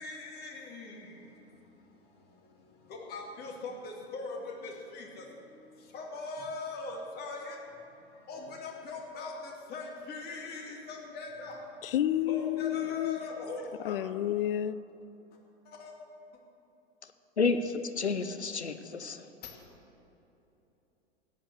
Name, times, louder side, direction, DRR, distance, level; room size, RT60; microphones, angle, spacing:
voice 1, 0.0-0.5 3.1-3.7 4.1-4.3 5.9-7.4 8.3-9.3 9.7-9.8 10.1-10.6 11.2-11.5 12.3-13.6 13.8-13.9, left 4 dB, 30° left, 2.4 m, -39 dB
voice 2, 11.8-13.2 13.8-14.8, left 12 dB, 55° left, 0.5 m, -30 dB
voice 3, 17.4-19.2, left 4 dB, 85° left, 0.8 m, -30 dB
14.5 x 9.4 x 6.6 m
figure-of-eight pair, 95°, 32 cm